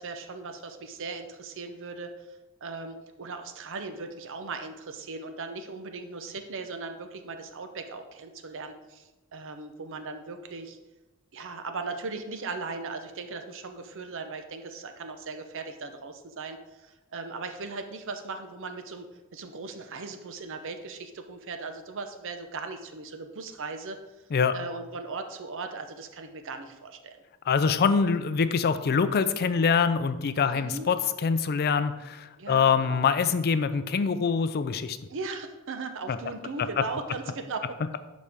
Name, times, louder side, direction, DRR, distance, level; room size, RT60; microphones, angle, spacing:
voice 1, 0.0-10.8 11.3-19.1 19.3-24.0 24.5-27.2 30.5-30.9 32.4-33.0 35.1-37.8, right 4 dB, 60° right, 7 dB, 0.7 m, -38 dB
voice 2, 27.5-35.0 36.1-36.2, left 5 dB, 45° left, 11 dB, 0.4 m, -24 dB
11.5 x 4.3 x 3.6 m, 1.1 s
head